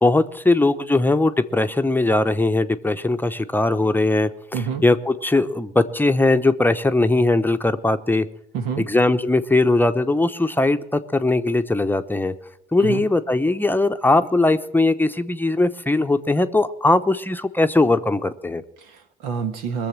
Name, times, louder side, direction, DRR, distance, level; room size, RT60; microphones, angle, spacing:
voice 1, 0.0-4.3 4.8-8.2 8.9-12.3 12.7-18.6, left 2 dB, 10° left, 9 dB, 0.8 m, -19 dB
voice 2, 4.5-4.9 8.5-8.9 12.8-13.0 18.8-19.9, right 6 dB, 80° right, 7 dB, 1.5 m, -27 dB
20.5 x 7.0 x 7.4 m, 0.81 s
hypercardioid pair, 70°, 21 cm